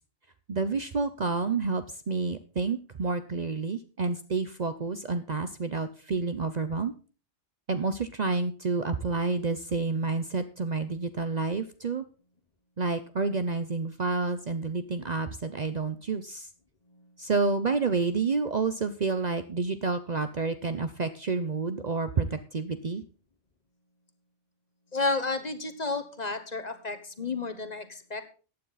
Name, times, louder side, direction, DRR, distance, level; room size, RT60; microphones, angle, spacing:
voice 1, 0.5-6.9 7.7-12.0 12.8-16.5 17.2-23.0, right 4 dB, 45° right, 10 dB, 0.7 m, -29 dB
voice 2, 24.9-28.2, left 3 dB, 40° left, 8 dB, 1.3 m, -31 dB
14.5 x 9.3 x 4.0 m, 0.37 s
omnidirectional pair, 1.2 m